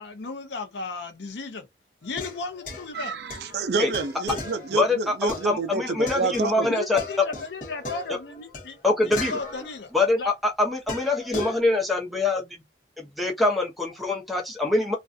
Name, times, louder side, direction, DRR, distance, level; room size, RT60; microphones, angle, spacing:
voice 1, 0.0-1.7 2.0-3.2 6.7-8.8 9.1-9.9 10.2-10.3, left 3 dB, 80° left, 0.6 m, -35 dB
sound 1, 2.0-6.7 7.0-10.2 10.9-11.6, left 3 dB, 45° left, 0.9 m, -38 dB
voice 2, 2.9-6.7, right 4 dB, 65° right, 0.4 m, -28 dB
voice 3, 4.7-7.0 8.8-9.4 9.9-12.6 13.0-15.0, left 2 dB, ahead, 0.7 m, -24 dB
2.4 x 2.2 x 2.5 m
head